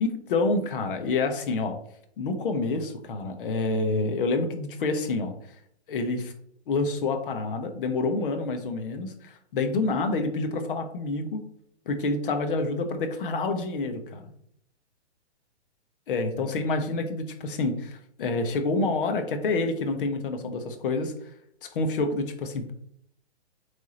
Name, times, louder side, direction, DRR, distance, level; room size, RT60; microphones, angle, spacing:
voice 1, 0.0-1.8 2.2-5.3 5.9-6.3 6.7-11.4 11.9-14.3 16.1-21.1 21.6-22.7, left 3 dB, 50° left, 6 dB, 1.3 m, -28 dB
8.0 x 3.5 x 4.3 m, 0.70 s
hypercardioid pair, 155°, 34 cm